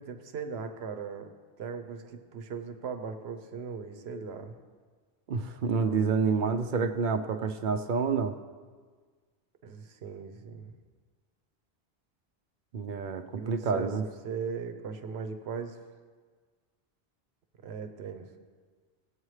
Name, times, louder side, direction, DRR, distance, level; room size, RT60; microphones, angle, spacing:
voice 1, 0.0-4.6 9.6-10.7 13.3-15.8 17.6-18.3, right 5 dB, 80° right, 7 dB, 1.0 m, -38 dB
voice 2, 5.3-8.4 12.7-14.0, right 5 dB, 60° right, 8 dB, 0.7 m, -28 dB
15.5 x 8.2 x 3.2 m, 1.5 s
omnidirectional pair, 1.1 m